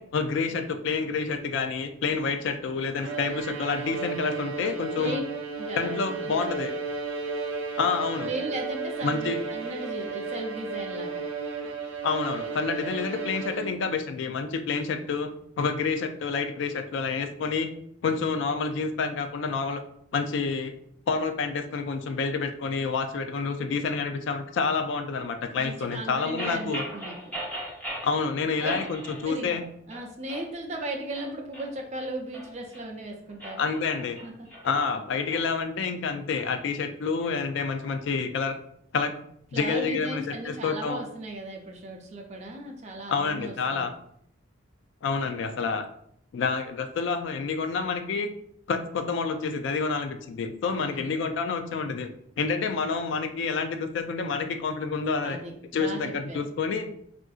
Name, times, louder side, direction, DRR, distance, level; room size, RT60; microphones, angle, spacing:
voice 1, 0.0-5.2 5.7-6.7 7.8-8.3 9.0-9.4 12.0-15.3 15.6-17.7 18.0-19.8 20.1-20.7 21.1-26.8 28.0-29.7 33.6-34.2 34.6-38.6 38.9-39.1 39.5-41.0 43.1-43.9 45.0-45.9 46.3-48.3 48.7-52.1 52.4-55.4 55.7-56.9, left 5 dB, 70° left, 7 dB, 0.3 m, -28 dB
Bowed string instrument, 3.0-14.0, right 4 dB, 85° right, 0.5 m, -34 dB
voice 2, 5.6-6.6 8.2-11.2 25.6-27.2 28.6-28.8 29.2-29.5 29.9-33.7 34.2-34.3 39.5-43.9 50.8-51.3 55.2-56.4, right 1 dB, 35° right, 2 dB, 0.5 m, -36 dB
sound 1, 26.4-28.1 28.6-29.6 29.9-30.5 31.0-32.8 33.3-35.4, right 1 dB, 5° left, 0.7 m, -38 dB
3.6 x 2.5 x 2.3 m, 0.70 s
head